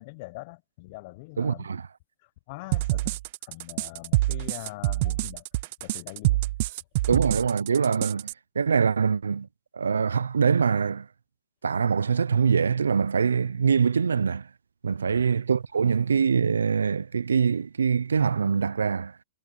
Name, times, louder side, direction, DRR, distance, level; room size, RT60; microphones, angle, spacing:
voice 1, 0.0-1.7 2.2-5.4 5.8-6.7 15.0-15.3, left 23 dB, 50° left, 0.9 m, -43 dB
voice 2, 1.4-1.9 7.1-9.5 9.7-11.1 11.6-14.5 14.8-19.2, right 6 dB, 90° right, 0.6 m, -24 dB
sound 1, 2.7-8.3, right 19 dB, 50° right, 0.6 m, -26 dB
hypercardioid pair, 125°, 0 cm